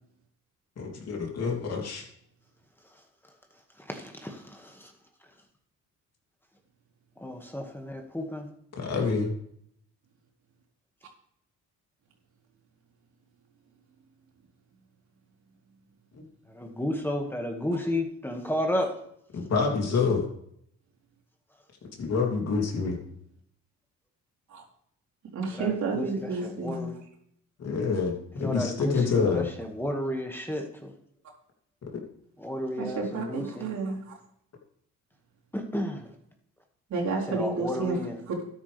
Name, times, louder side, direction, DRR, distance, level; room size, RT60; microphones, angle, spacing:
voice 1, 0.8-2.0 8.8-9.3 16.1-16.2 19.3-20.2 22.0-23.0 27.6-29.5, left 4 dB, 55° left, 0 dB, 3.1 m, -27 dB
voice 2, 3.9-4.9 7.2-8.5 16.5-19.0 25.5-27.0 28.4-30.9 32.4-33.7 35.5-36.1 37.3-38.3, left 1 dB, 5° left, 3 dB, 2.0 m, -32 dB
voice 3, 25.3-26.9 32.8-34.1 36.9-38.0 38.3-38.4, right 4 dB, 70° right, -2 dB, 3.9 m, -30 dB
12.5 x 10.5 x 3.5 m, 0.70 s
cardioid pair, 90°, 30 cm